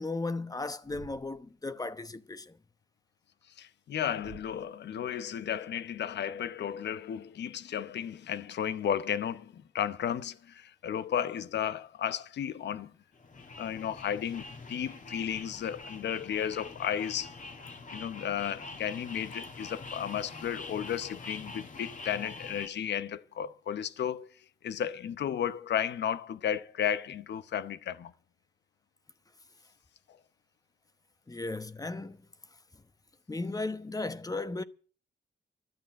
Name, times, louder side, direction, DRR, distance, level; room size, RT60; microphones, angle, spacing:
voice 1, 0.0-2.6 31.3-32.2 33.3-34.6, left 3 dB, 20° left, 1.0 m, -35 dB
Thump thud, 0.8-1.5 4.2-4.7, right 8 dB, 60° right, 1.2 m, -51 dB
voice 2, 3.6-12.9 13.6-17.3 17.9-28.1, left 9 dB, 70° left, 0.8 m, -34 dB
sound 1, 13.1-22.7, left 3 dB, 45° left, 2.1 m, -45 dB
12.0 x 8.8 x 8.8 m
cardioid pair, 80°, 19 cm